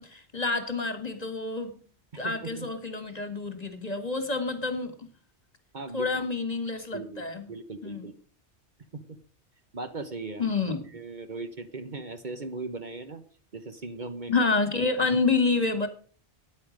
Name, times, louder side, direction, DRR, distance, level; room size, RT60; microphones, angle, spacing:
voice 1, 0.0-1.7 2.2-5.1 5.9-7.5 7.8-8.1 10.4-10.9 14.3-15.9, left 3 dB, 35° left, 8 dB, 1.8 m, -28 dB
voice 2, 2.1-2.7 5.7-6.3 6.9-8.1 8.9-9.0 9.7-10.4 10.9-13.2 13.5-14.5, right 3 dB, 45° right, 9 dB, 1.1 m, -38 dB
13.5 x 9.9 x 5.2 m, 0.42 s
omnidirectional pair, 1.1 m